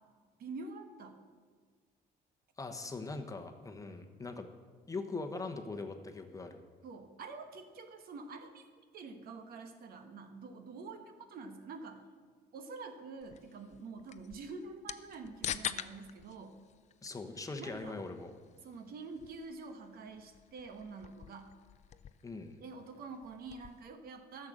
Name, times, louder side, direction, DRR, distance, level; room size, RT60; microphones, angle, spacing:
voice 1, 0.4-1.2 6.8-8.6 8.9-12.1 12.5-16.6 17.6-18.0 18.6-21.5 22.6-24.5, right 4 dB, 60° right, 7 dB, 1.3 m, -47 dB
voice 2, 2.6-4.5 4.9-6.6 17.0-18.3 22.2-22.6, left 3 dB, 20° left, 5 dB, 1.0 m, -41 dB
sound 1, 13.2-23.9, left 9 dB, 45° left, 0.5 m, -47 dB
11.5 x 6.6 x 7.4 m, 1.6 s
cardioid pair, 110°, 17 cm